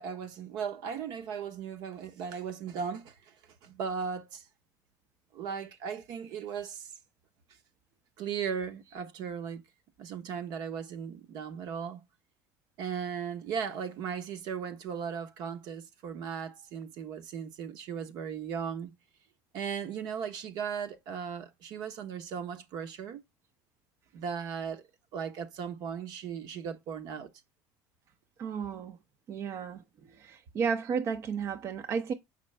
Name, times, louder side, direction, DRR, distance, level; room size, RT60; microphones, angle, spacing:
voice 1, 0.0-3.3 3.6-4.4 5.3-6.9 8.2-9.6 10.0-12.0 12.8-18.9 19.5-23.2 24.1-24.8 25.1-27.3, right 7 dB, 60° right, 1.0 m, -37 dB
voice 2, 28.4-29.0 29.3-29.8 30.1-32.1, right 6 dB, 40° right, 0.6 m, -33 dB
6.5 x 5.2 x 3.3 m
cardioid pair, 135°, 8 cm